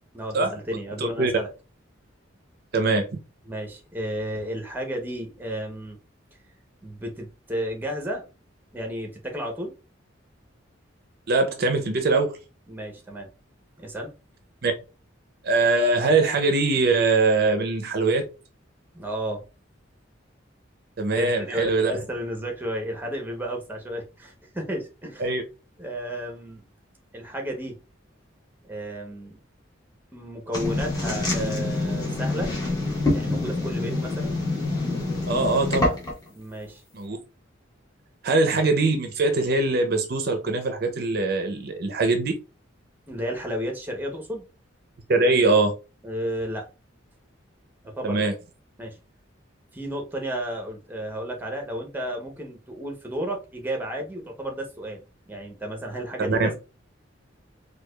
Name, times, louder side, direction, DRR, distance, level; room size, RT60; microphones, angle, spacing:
voice 1, 0.1-1.5 3.5-6.0 6.8-8.3 8.7-9.7 12.7-13.3 13.8-14.1 18.9-19.4 21.2-25.3 25.8-26.6 27.1-27.8 28.6-29.4 30.1-32.5 33.1-34.4 36.3-36.8 43.1-44.4 46.0-46.7 47.8-48.3 48.8-49.0 49.7-55.0 55.3-56.5, equal, 10° right, 0.7 m, -32 dB
voice 2, 1.0-1.3 2.7-3.1 11.3-12.4 14.6-14.7 15.4-18.2 21.0-21.9 25.2-25.4 35.3-36.0 36.9-37.2 38.2-42.3 45.1-45.8 48.0-48.3 56.2-56.5, right 3 dB, 55° right, 0.5 m, -22 dB
sound 1, 30.5-36.3, left 2 dB, 20° left, 1.1 m, -26 dB
4.7 x 2.3 x 2.2 m
head